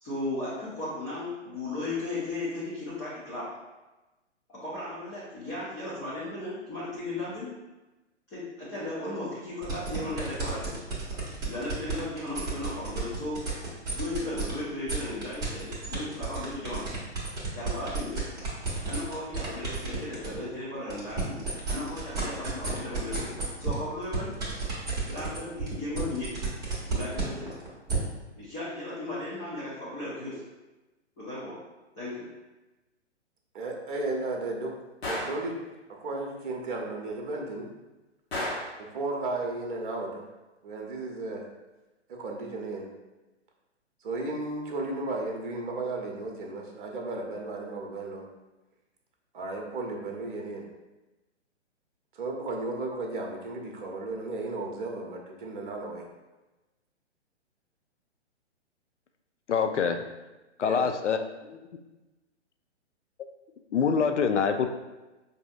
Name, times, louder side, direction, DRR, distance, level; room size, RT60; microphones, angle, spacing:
voice 1, 0.0-3.5 4.5-7.5 8.3-10.8 11.4-13.4 13.9-16.9 17.5-18.2 18.8-23.3 23.6-24.4 25.1-26.4 26.9-27.5 28.4-30.4 31.2-31.6 32.0-32.3, left 2 dB, 10° left, -11 dB, 0.4 m, -36 dB
sound 1, 9.6-14.5 14.9-20.4 20.8-27.9, right 3 dB, 10° right, 0.8 m, -32 dB
voice 2, 33.5-34.7 35.1-35.6 35.9-37.7 38.8-40.2 40.6-41.4 42.1-42.9 44.0-48.3 49.3-50.6 52.1-56.1 60.6-60.9, right 2 dB, 45° right, 0 dB, 0.7 m, -34 dB
Gunshot gunfire, 35.0-35.4 38.3-38.8, left 1 dB, 60° left, 1.3 m, -32 dB
voice 3, 59.5-60.0 60.6-61.3 63.7-64.7, left 6 dB, 75° left, 7 dB, 0.5 m, -25 dB
4.9 x 2.7 x 2.3 m, 1.1 s
figure-of-eight pair, 125°, 36 cm